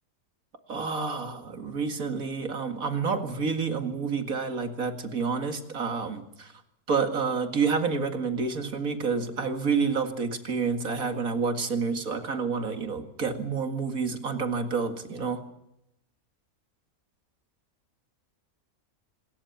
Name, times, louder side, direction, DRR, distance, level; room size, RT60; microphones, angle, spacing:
voice 1, 0.7-6.5 6.9-15.4, right 5 dB, 70° right, 7 dB, 2.5 m, -29 dB
26.0 x 14.0 x 8.7 m, 0.83 s
omnidirectional pair, 1.5 m